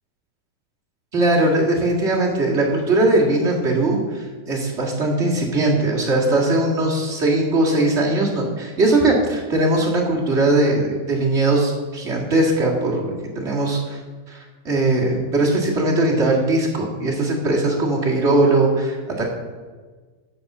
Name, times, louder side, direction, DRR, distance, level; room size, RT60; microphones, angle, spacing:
voice 1, 1.1-14.0 14.3-19.2, right 2 dB, 25° right, -3 dB, 1.6 m, -20 dB
13.5 x 5.2 x 6.6 m, 1.4 s
omnidirectional pair, 3.7 m